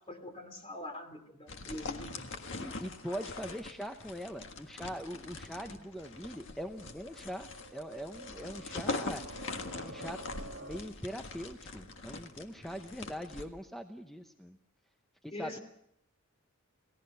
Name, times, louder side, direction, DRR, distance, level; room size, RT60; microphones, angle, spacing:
voice 1, 0.0-2.3 5.6-5.8 9.5-9.8 15.3-15.6, left 1 dB, 25° left, 6 dB, 2.9 m, -44 dB
sound 1, 1.5-13.4, left 3 dB, 55° left, 1.7 m, -43 dB
voice 2, 2.6-9.5 9.7-14.6 15.2-15.6, equal, ahead, 5 dB, 0.8 m, -42 dB
sound 2, 5.7-10.8, right 1 dB, 55° right, 3.2 m, -50 dB
29.5 x 17.0 x 5.6 m, 0.74 s
head